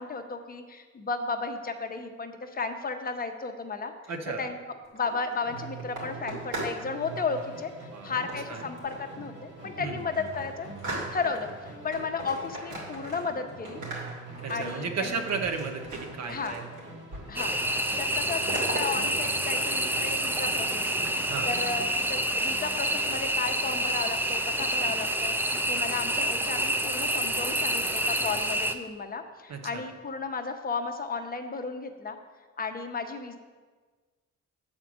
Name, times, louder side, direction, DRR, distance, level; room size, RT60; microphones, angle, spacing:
voice 1, 0.0-3.9 4.4-4.6 4.9-7.7 8.0-10.7 11.1-13.8 14.5-15.2 16.3-16.6 17.3-17.5 18.0-20.9 21.4-21.8 22.1-32.2 32.6-33.4, left 4 dB, 30° left, 6 dB, 0.8 m, -34 dB
voice 2, 4.1-4.5 7.9-8.7 9.8-10.0 14.4-16.6 21.2-21.5 29.5-29.8, right 5 dB, 60° right, 4 dB, 1.0 m, -34 dB
sound 1, 4.8-6.8 7.1-7.5 8.3-9.1 9.6-9.7 10.0-11.5 11.9-13.4 13.7-16.8 17.1-17.7 18.0-18.8, right 2 dB, 75° right, 2.7 m, -39 dB
Musical instrument, 5.4-22.1, right 3 dB, 40° right, 1.9 m, -45 dB
sound 2, 17.4-28.8, right 1 dB, 5° right, 0.4 m, -28 dB
7.3 x 4.4 x 6.1 m, 1.4 s
cardioid pair, 90°, 30 cm